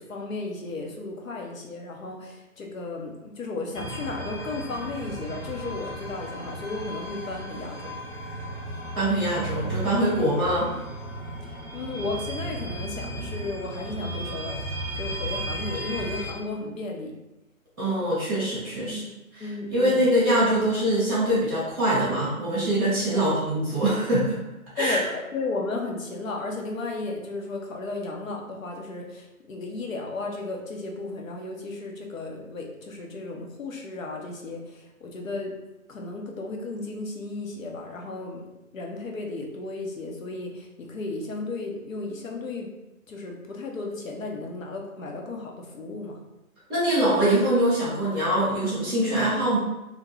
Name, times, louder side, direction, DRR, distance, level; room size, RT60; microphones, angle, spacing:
voice 1, 0.0-7.9 11.4-14.6 14.9-17.2 18.8-19.1 19.4-20.2 23.1-23.4 24.8-35.5 35.9-38.4 38.7-42.7 43.1-46.2, left 3 dB, 65° left, 0 dB, 0.7 m, -34 dB
sound 1, 3.7-16.3, right 1 dB, 20° left, 1.0 m, -35 dB
voice 2, 8.9-10.7 17.8-19.0 19.7-24.4 24.7-25.0 46.7-49.6, right 1 dB, 10° right, -14 dB, 0.7 m, -23 dB
2.4 x 2.1 x 3.1 m, 0.97 s
figure-of-eight pair, 155°, 43 cm